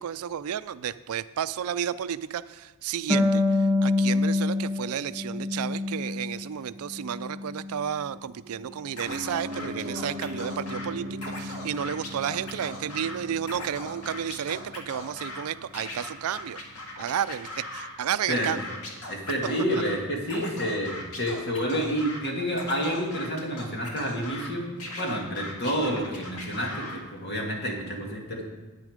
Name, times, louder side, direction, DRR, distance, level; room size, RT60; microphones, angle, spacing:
voice 1, 0.0-16.6 17.0-18.6, right 9 dB, 75° right, 15 dB, 0.4 m, -32 dB
Harp, 3.1-6.5 6.8-7.9, left 2 dB, 5° right, 1.1 m, -26 dB
Scratching (performance technique), 9.0-10.9 11.2-13.1 13.4-15.4 15.7-17.9 18.3-19.9 20.2-22.2 22.5-24.5 24.8-27.0, left 2 dB, 80° left, 1.9 m, -39 dB
Piano, 9.0-19.0 19.3-19.4, left 1 dB, 50° right, 1.6 m, -40 dB
voice 2, 18.3-18.7 19.1-24.7 25.0-28.4, equal, 50° left, 0 dB, 2.2 m, -29 dB
9.6 x 9.3 x 5.1 m, 1.3 s
head